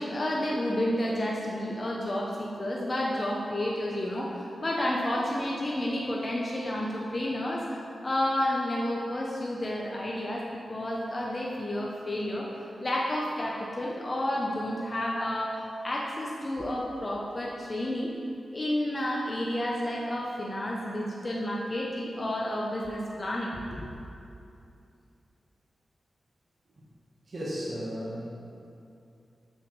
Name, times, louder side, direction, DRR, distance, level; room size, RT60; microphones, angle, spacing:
voice 1, 0.0-10.4 10.7-12.5 12.8-18.1 18.5-23.9, left 1 dB, 30° left, -3 dB, 0.7 m, -30 dB
voice 2, 27.3-28.3, equal, 50° right, -7 dB, 1.2 m, -34 dB
6.9 x 6.2 x 3.2 m, 2.6 s
wide cardioid pair, 90°, 0 cm